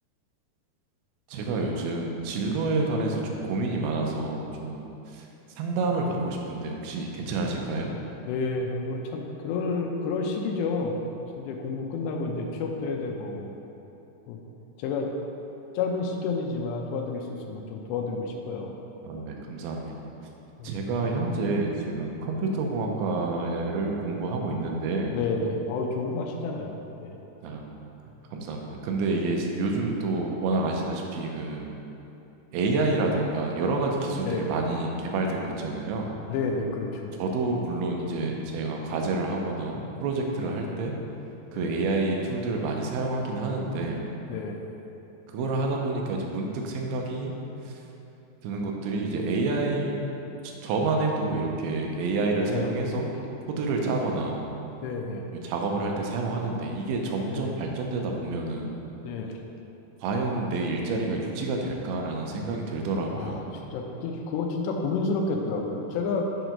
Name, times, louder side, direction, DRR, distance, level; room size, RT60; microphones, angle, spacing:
voice 1, 1.3-5.3 5.6-7.9 19.0-20.1 20.6-25.1 27.4-27.7 28.3-31.7 32.5-36.1 37.2-41.0 41.5-44.0 45.3-47.3 47.7-47.8 48.4-50.0 50.6-53.1 53.5-54.5 55.4-58.8 60.0-63.4, right 3 dB, 85° right, 1 dB, 3.1 m, -28 dB
voice 2, 8.3-10.9 11.4-13.5 14.3-14.4 14.8-15.1 15.7-18.7 20.6-20.7 25.1-27.2 29.3-29.4 34.2-34.5 36.3-37.1 40.4-40.6 41.5-41.7 44.3-44.6 52.5-52.7 54.8-55.3 57.3-57.5 59.0-59.4 63.1-66.3, left 4 dB, 80° left, 2 dB, 2.8 m, -30 dB
7.2 x 4.5 x 5.1 m, 3.0 s
omnidirectional pair, 5.1 m